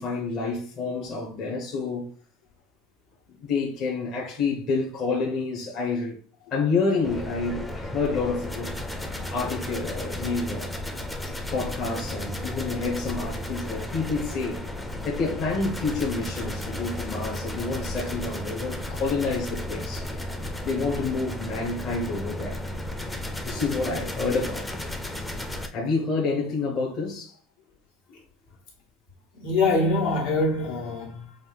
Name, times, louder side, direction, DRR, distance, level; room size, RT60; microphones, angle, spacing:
voice 1, 0.0-2.1 3.4-6.2 6.5-8.8 9.3-10.7 11.3-14.7 15.0-20.2 20.6-22.6 23.4-24.7 25.7-27.4, left 4 dB, 40° left, 0.9 m, -28 dB
sound 1, 7.0-25.7, left 1 dB, 5° left, 0.4 m, -34 dB
voice 2, 29.3-31.4, left 2 dB, 75° left, 1.8 m, -24 dB
5.4 x 2.3 x 3.4 m
supercardioid pair, 150°, 0 cm